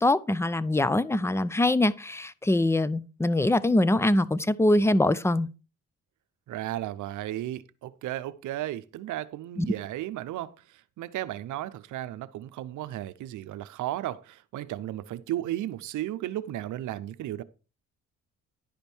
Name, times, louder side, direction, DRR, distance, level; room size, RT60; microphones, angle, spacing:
voice 1, 0.0-5.5 9.6-9.7, left 1 dB, 10° left, 0.5 m, -23 dB
voice 2, 6.5-17.4, right 14 dB, 80° right, 0.7 m, -34 dB
10.5 x 5.2 x 4.5 m
cardioid pair, 90°, 30 cm